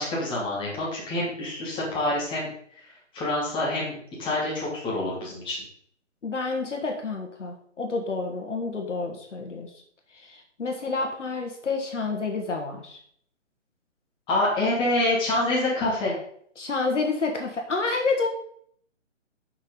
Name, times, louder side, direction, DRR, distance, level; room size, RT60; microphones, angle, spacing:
voice 1, 0.0-2.5 3.1-5.6 14.3-16.1, left 2 dB, 15° left, -5 dB, 2.7 m, -26 dB
voice 2, 6.2-9.7 10.1-13.0 16.6-18.3, left 3 dB, 70° left, 2 dB, 1.7 m, -29 dB
5.9 x 5.6 x 5.2 m, 0.63 s
figure-of-eight pair, 140°, 37 cm